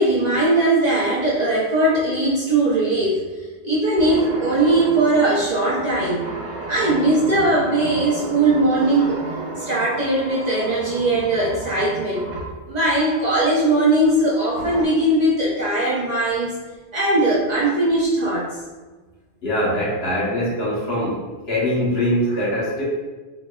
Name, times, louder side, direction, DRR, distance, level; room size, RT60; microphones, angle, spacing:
voice 1, 0.0-3.2 3.6-6.3 6.7-9.2 9.5-12.3 12.7-16.6 16.9-18.5, right 2 dB, 45° right, -6 dB, 0.7 m, -19 dB
sound 1, 4.0-12.6 14.6-14.8, right 2 dB, 80° right, 1.1 m, -32 dB
voice 2, 19.4-21.2 21.5-22.8, equal, 70° left, -5 dB, 1.2 m, -22 dB
4.0 x 3.0 x 2.3 m, 1.3 s
omnidirectional pair, 1.1 m